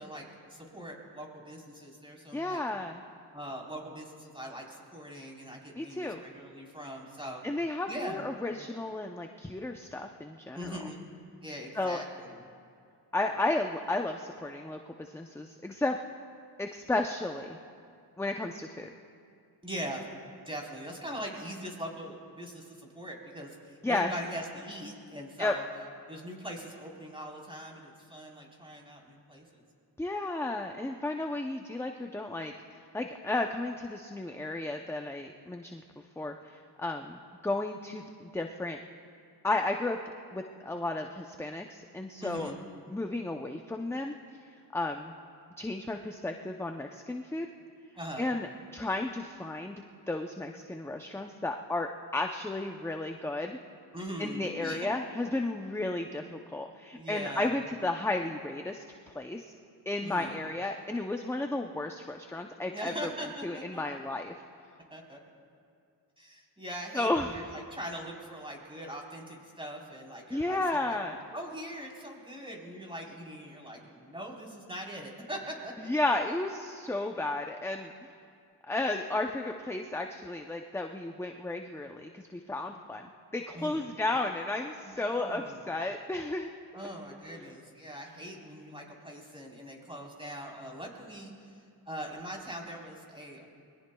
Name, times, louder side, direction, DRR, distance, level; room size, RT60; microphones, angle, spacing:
voice 1, 0.0-2.6 3.3-7.4 7.9-8.3 10.5-11.1 11.4-12.5 19.6-20.1 20.5-25.6 26.1-29.6 42.2-42.6 48.0-48.3 53.9-54.9 56.9-57.6 60.0-60.4 62.7-64.0 64.9-65.2 66.2-71.0 71.3-75.9 83.5-83.9 84.8-85.7 86.7-91.6 91.9-93.5, equal, 15° right, -2 dB, 3.8 m, -41 dB
voice 2, 2.3-3.0 5.8-6.2 7.4-10.8 11.7-12.0 13.1-16.0 16.6-17.6 18.2-18.9 23.8-24.1 25.4-25.5 30.0-32.5 32.9-35.8 36.2-38.8 39.4-40.0 40.3-42.5 42.9-44.1 44.7-45.1 45.6-47.5 48.2-53.6 54.2-58.8 59.1-59.5 59.9-63.1 63.4-64.3 66.9-67.4 70.3-71.2 75.8-78.1 78.7-86.5 87.3-87.4, left 2 dB, 5° left, 4 dB, 0.6 m, -33 dB
27.0 x 21.5 x 2.3 m, 2.3 s
cardioid pair, 90°, 41 cm